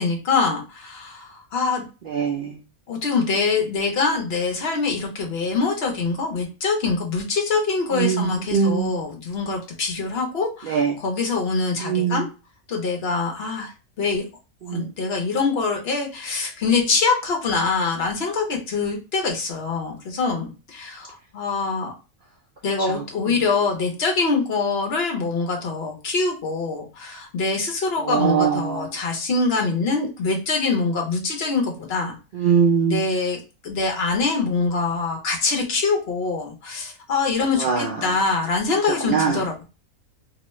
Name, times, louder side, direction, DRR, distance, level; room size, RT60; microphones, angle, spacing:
voice 1, 0.0-1.8 2.9-12.3 12.7-13.7 14.0-14.2 14.7-21.9 22.6-32.2 32.9-33.4 33.6-39.6, left 4 dB, 50° left, 2 dB, 1.0 m, -24 dB
voice 2, 2.1-2.6 7.9-9.0 10.7-10.9 11.9-12.2 14.7-14.9 28.1-28.9 32.4-33.0 37.6-37.9 39.1-39.4, right 6 dB, 85° right, -1 dB, 0.4 m, -21 dB
3.0 x 2.2 x 3.0 m, 0.31 s
omnidirectional pair, 1.5 m